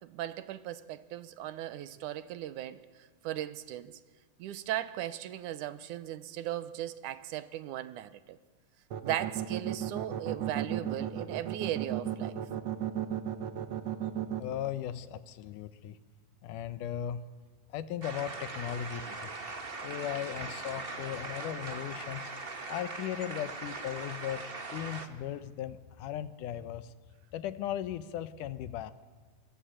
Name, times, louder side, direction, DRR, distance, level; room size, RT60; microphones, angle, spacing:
voice 1, 0.0-4.0 4.4-8.4 9.0-12.4, right 12 dB, 85° right, 14 dB, 2.5 m, -37 dB
sound 1, 8.9-14.4, right 10 dB, 60° right, 2.4 m, -34 dB
voice 2, 14.4-16.0 16.4-17.2 17.7-19.3 19.8-24.4 24.7-26.9 27.3-28.9, left 10 dB, 90° left, 13 dB, 2.6 m, -37 dB
sound 2, 18.0-25.1, right 3 dB, 30° right, 1.2 m, -40 dB
26.5 x 23.0 x 8.9 m, 1.5 s
omnidirectional pair, 3.5 m